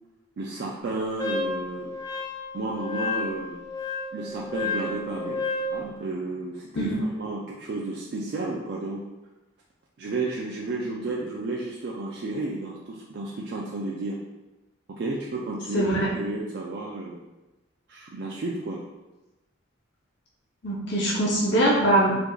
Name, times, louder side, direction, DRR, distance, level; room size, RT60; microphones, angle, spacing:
voice 1, 0.4-1.9 2.5-3.6 4.1-5.4 5.7-6.9 7.2-9.0 10.0-14.2 15.0-15.9 16.1-17.2 17.9-18.8, right 2 dB, 50° right, -3 dB, 0.3 m, -32 dB
Wind instrument woodwind instrument, 1.2-5.8, left 3 dB, 15° left, 0.6 m, -31 dB
voice 2, 15.7-16.1 20.6-22.2, right 1 dB, 55° left, -4 dB, 0.6 m, -22 dB
4.5 x 2.5 x 2.3 m, 1.0 s
head